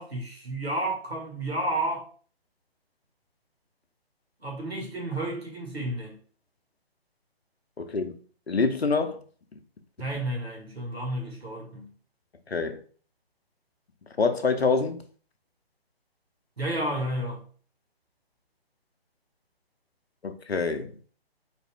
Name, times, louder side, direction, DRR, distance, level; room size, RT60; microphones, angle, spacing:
voice 1, 0.0-2.1 4.4-6.2 10.0-11.9 16.6-17.4, right 1 dB, 80° right, 1.9 m, -31 dB
voice 2, 7.8-8.1 8.5-9.2 12.5-12.8 14.2-15.0 20.2-20.9, left 4 dB, 80° left, 0.7 m, -26 dB
4.1 x 2.5 x 3.4 m
figure-of-eight pair, 140°, 31 cm